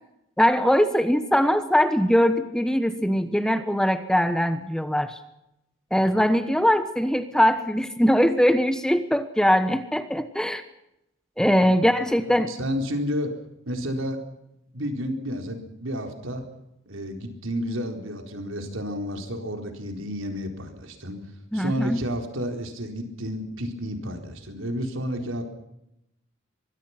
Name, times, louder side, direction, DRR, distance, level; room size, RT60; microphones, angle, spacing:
voice 1, 0.4-5.2 5.9-10.6 11.4-12.5 21.5-22.0, equal, 5° left, 10 dB, 1.2 m, -21 dB
voice 2, 11.6-13.3 13.7-14.2 14.7-16.4 16.9-21.2 21.5-25.4, equal, 80° right, 4 dB, 4.4 m, -31 dB
24.0 x 22.5 x 6.0 m, 0.84 s
head